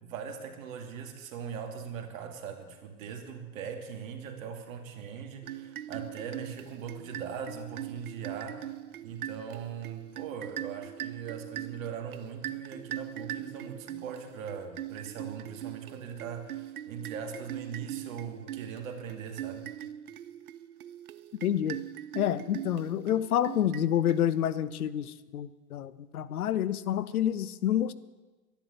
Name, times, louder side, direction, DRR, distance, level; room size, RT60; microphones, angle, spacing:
voice 1, 0.0-19.7, right 7 dB, 65° right, 5 dB, 2.6 m, -40 dB
sound 1, 5.4-24.6, right 12 dB, 85° right, 0.8 m, -41 dB
voice 2, 21.4-21.8 22.1-27.9, left 10 dB, 85° left, 17 dB, 0.8 m, -28 dB
11.5 x 11.5 x 7.9 m, 1.2 s
hypercardioid pair, 110°, 43 cm